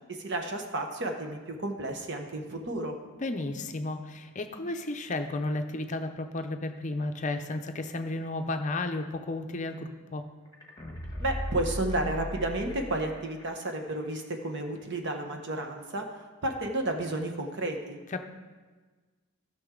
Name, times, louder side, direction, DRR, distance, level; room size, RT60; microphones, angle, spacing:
voice 1, 0.1-2.9 11.2-16.0 16.4-18.0, right 2 dB, 55° right, 3 dB, 1.1 m, -32 dB
voice 2, 3.2-10.3 18.1-18.2, left 2 dB, 35° left, 6 dB, 0.6 m, -33 dB
sound 1, 10.5-13.4 13.7-13.8, left 1 dB, 15° left, 1.3 m, -36 dB
15.5 x 6.1 x 3.8 m, 1.4 s
head